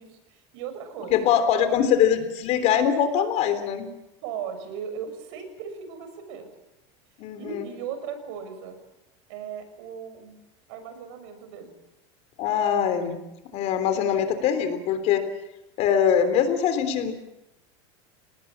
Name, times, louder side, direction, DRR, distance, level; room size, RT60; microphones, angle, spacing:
voice 1, 0.0-1.3 4.2-6.5 7.4-8.8 9.3-10.4 10.7-11.8, right 7 dB, 65° right, 8 dB, 6.0 m, -37 dB
voice 2, 1.1-3.9 7.2-7.6 12.4-13.2 13.5-15.2 15.8-17.1, left 8 dB, 45° left, 9 dB, 3.4 m, -22 dB
29.0 x 19.5 x 7.4 m, 0.91 s
supercardioid pair, 145°, 15 cm